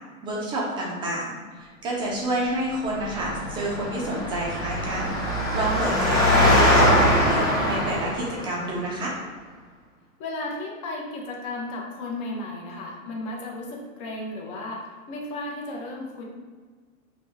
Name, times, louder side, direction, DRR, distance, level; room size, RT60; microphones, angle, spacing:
voice 1, 0.2-9.1, right 1 dB, 10° right, -4 dB, 0.4 m, -29 dB
Engine, 2.9-8.6, left 1 dB, 10° left, 1.1 m, -22 dB
voice 2, 10.2-16.2, left 2 dB, 40° left, -1 dB, 0.9 m, -34 dB
5.3 x 2.3 x 2.8 m, 1.5 s
hypercardioid pair, 135°, 42 cm